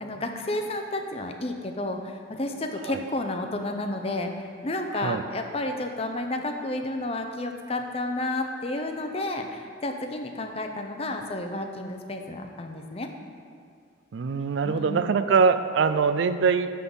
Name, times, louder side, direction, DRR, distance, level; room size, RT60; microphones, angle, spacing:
voice 1, 0.0-13.1 14.6-15.0, left 2 dB, 30° left, 5 dB, 0.6 m, -31 dB
voice 2, 4.9-5.2 14.1-16.7, right 5 dB, 65° right, 11 dB, 0.3 m, -23 dB
9.8 x 3.8 x 7.0 m, 2.2 s
head